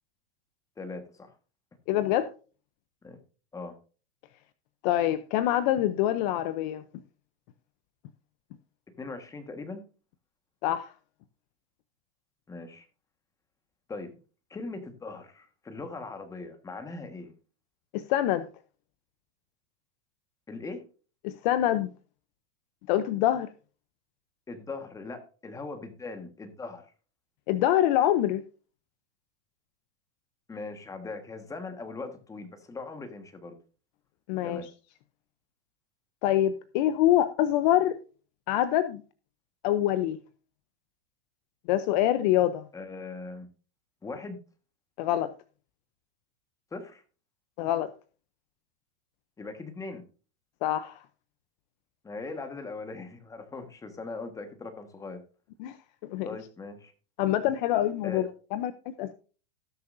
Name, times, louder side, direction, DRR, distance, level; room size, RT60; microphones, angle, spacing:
voice 1, 0.8-1.3 3.0-3.2 3.5-3.8 9.0-9.8 12.5-12.9 13.9-14.2 14.5-17.3 20.5-20.8 24.5-26.9 30.5-33.6 34.4-34.7 42.7-43.5 44.0-44.4 46.7-47.0 49.4-50.0 52.0-55.2 56.2-56.9 58.0-58.3, left 3 dB, 10° left, 1.4 m, -40 dB
voice 2, 1.9-2.3 4.8-6.8 10.6-10.9 17.9-18.5 21.2-21.9 22.9-23.5 27.5-28.4 34.3-34.6 36.2-38.0 38.5-39.0 39.6-40.2 41.7-42.7 45.0-45.3 47.6-47.9 50.6-51.0 55.6-55.8 56.0-56.3 57.2-59.1, left 12 dB, 45° left, 0.7 m, -25 dB
18.5 x 6.7 x 2.6 m
supercardioid pair, 150°, 32 cm